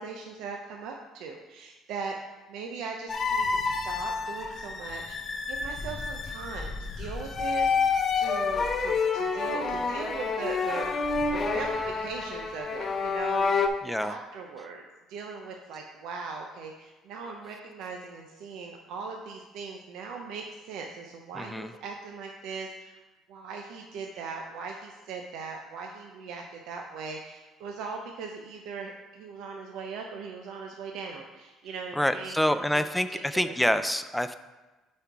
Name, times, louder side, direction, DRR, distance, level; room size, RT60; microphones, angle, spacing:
voice 1, 0.0-5.2 5.5-13.5 14.0-14.8 15.1-23.0 23.3-32.9 33.3-33.9, right 5 dB, 75° right, 2 dB, 0.6 m, -39 dB
sound 1, 3.1-13.7, left 4 dB, 30° left, 0.7 m, -29 dB
voice 2, 13.8-14.2 21.3-21.7 32.0-34.3, equal, 5° left, 10 dB, 0.3 m, -27 dB
7.5 x 4.3 x 4.7 m, 1.2 s
cardioid pair, 135°, 0 cm